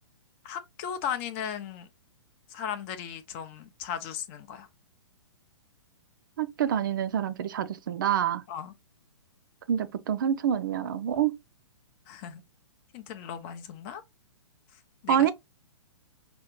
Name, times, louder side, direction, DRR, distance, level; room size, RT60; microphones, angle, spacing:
voice 1, 0.4-1.9 2.5-4.7 8.5-8.7 12.1-12.4 12.9-14.0 15.0-15.3, left 8 dB, 25° left, 0.5 m, -36 dB
voice 2, 6.4-8.4 9.7-11.3 15.1-15.3, right 9 dB, 45° right, 0.5 m, -26 dB
5.0 x 2.4 x 3.0 m
figure-of-eight pair, 120°, 16 cm